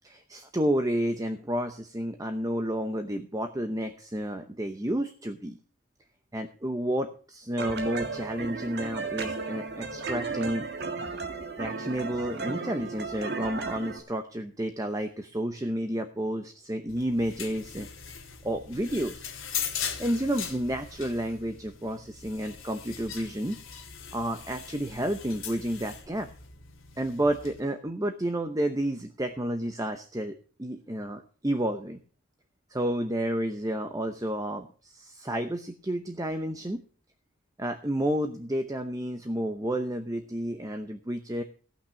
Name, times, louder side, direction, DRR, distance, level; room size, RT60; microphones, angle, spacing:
voice 1, 0.0-5.6 6.3-10.7 11.6-17.9 18.4-19.2 20.0-23.6 24.1-26.3 27.0-32.0 32.7-36.8 37.6-41.4, right 1 dB, 15° right, 7 dB, 0.8 m, -31 dB
sound 1, 7.6-14.0, right 4 dB, 50° right, 1.6 m, -34 dB
sound 2, 16.9-27.6, left 7 dB, 75° left, 2.1 m, -40 dB
16.5 x 6.0 x 6.4 m, 0.41 s
head